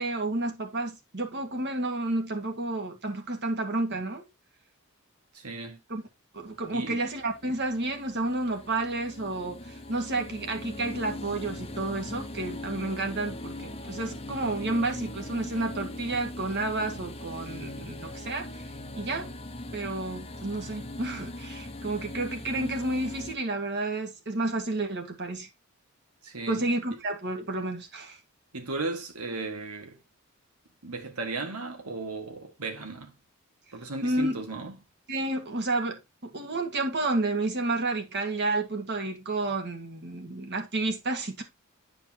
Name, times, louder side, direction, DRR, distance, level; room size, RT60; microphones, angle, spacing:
voice 1, 0.0-4.2 5.9-6.0 6.3-18.7 18.9-19.3 19.7-25.5 26.5-28.2 34.0-34.4 35.1-36.0 36.3-41.4, right 2 dB, 50° right, 1.8 m, -31 dB
voice 2, 5.3-5.8 6.7-7.0 26.2-26.6 28.5-30.0 30.8-33.1 33.7-34.7, right 3 dB, 85° right, 1.9 m, -35 dB
sound 1, 6.4-23.3, left 1 dB, 25° left, 0.8 m, -40 dB
10.0 x 5.0 x 2.9 m
head